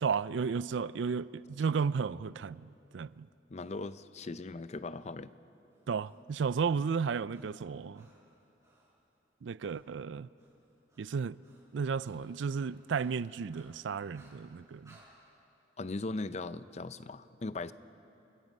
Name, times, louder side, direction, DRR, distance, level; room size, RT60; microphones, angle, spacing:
voice 1, 0.0-2.7 2.9-3.3 5.9-8.1 9.4-10.3 11.0-11.4 11.7-15.0, right 5 dB, 75° right, 0.4 m, -33 dB
voice 2, 3.5-5.3 15.8-17.7, left 3 dB, 35° left, 0.5 m, -39 dB
Breathing, 5.7-8.9 9.6-9.8 10.1-15.1, right 2 dB, 15° right, 6.0 m, -65 dB
29.0 x 22.5 x 5.4 m
head